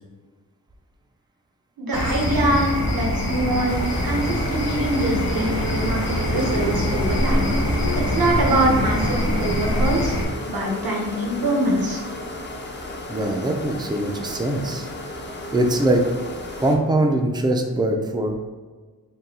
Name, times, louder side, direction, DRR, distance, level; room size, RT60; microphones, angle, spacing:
voice 1, 1.8-3.8 4.0-7.5 8.1-10.2 10.5-12.0, right 1 dB, 75° right, -1 dB, 1.0 m, -24 dB
sound 1, 1.9-10.2, left 1 dB, 75° left, 1.0 m, -23 dB
sound 2, 3.7-16.8, left 1 dB, 30° left, 0.6 m, -34 dB
voice 2, 13.1-14.9 15.5-16.3 16.6-18.4, right 1 dB, 10° right, 3 dB, 0.4 m, -22 dB
3.7 x 2.2 x 4.1 m, 1.4 s
wide cardioid pair, 80°, 36 cm